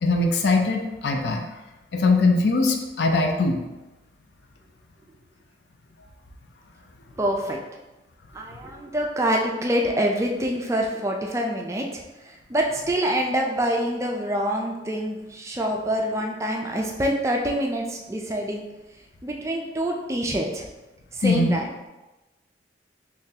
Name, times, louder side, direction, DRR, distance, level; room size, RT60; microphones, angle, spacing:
voice 1, 0.0-1.4 1.9-3.6 21.2-21.6, left 3 dB, 70° left, 3 dB, 0.5 m, -21 dB
voice 2, 7.2-7.6 8.3-18.6 19.2-20.7 21.1-21.7, equal, 15° right, 0 dB, 0.3 m, -26 dB
3.7 x 3.1 x 2.7 m, 1.1 s
head